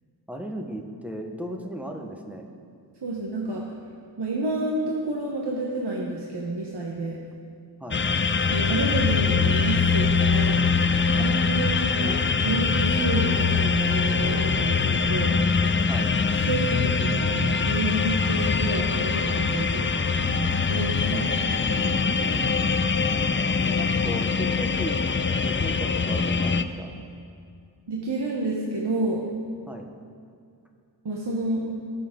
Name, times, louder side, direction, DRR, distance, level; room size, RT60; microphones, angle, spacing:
voice 1, 0.3-2.5 7.8-8.0 11.2-11.3 15.9-16.2 21.1-21.2 23.7-25.1 25.4-27.0 29.7-29.9, equal, 5° right, 2 dB, 1.2 m, -36 dB
voice 2, 3.0-3.6 4.2-7.2 8.5-10.6 11.2-15.4 16.3-22.6 27.9-29.2 31.0-31.7, right 2 dB, 70° right, -3 dB, 1.2 m, -29 dB
sound 1, 7.9-26.6, left 5 dB, 30° left, 0.4 m, -23 dB
18.5 x 6.9 x 3.8 m, 2.3 s
wide cardioid pair, 75°, 42 cm